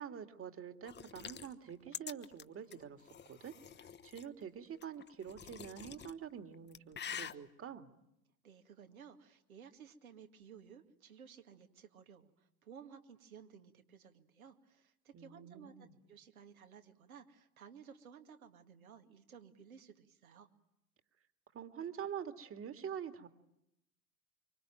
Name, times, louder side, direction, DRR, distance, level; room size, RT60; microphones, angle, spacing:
voice 1, 0.0-3.5 3.8-7.9 15.1-16.0 21.5-23.3, right 8 dB, 30° right, 8 dB, 2.2 m, -46 dB
sound 1, 0.8-4.3 4.8-6.1 6.5-7.3, left 8 dB, 25° left, 1.2 m, -47 dB
voice 2, 8.4-20.5, right 7 dB, 75° right, 5 dB, 2.4 m, -56 dB
25.5 x 25.0 x 9.1 m, 0.84 s
figure-of-eight pair, 70°, 43 cm